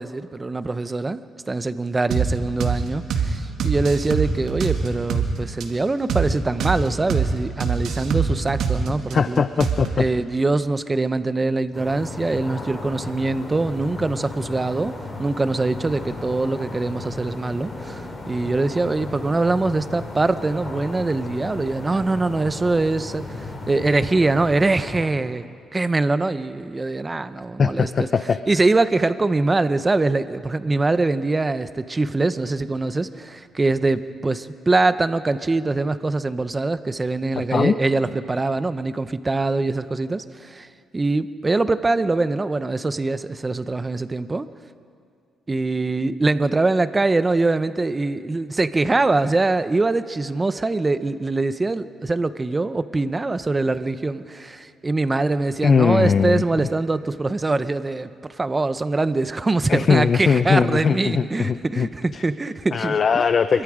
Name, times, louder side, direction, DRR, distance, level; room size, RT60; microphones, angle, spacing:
voice 1, 0.0-9.4 10.0-14.9 15.2-25.4 25.7-28.1 28.5-40.7 40.9-44.5 45.5-63.2 63.5-63.6, right 3 dB, 20° right, 12 dB, 0.9 m, -23 dB
sound 1, 2.1-2.3 2.6-2.8 3.1-3.3 3.6-5.3 5.6-5.7 6.1-6.3 6.6-6.8 7.1-7.3 7.6-9.1 9.6-10.0, right 7 dB, 75° right, 2.1 m, -23 dB
voice 2, 9.1-10.0 27.6-28.4 37.4-37.7 55.6-56.4 59.7-62.2 62.7-63.6, left 6 dB, 45° left, 11 dB, 0.6 m, -20 dB
sound 2, 11.7-25.0, left 2 dB, 25° left, 5.3 m, -35 dB
26.0 x 23.0 x 5.0 m, 2.3 s
cardioid pair, 90°, 0 cm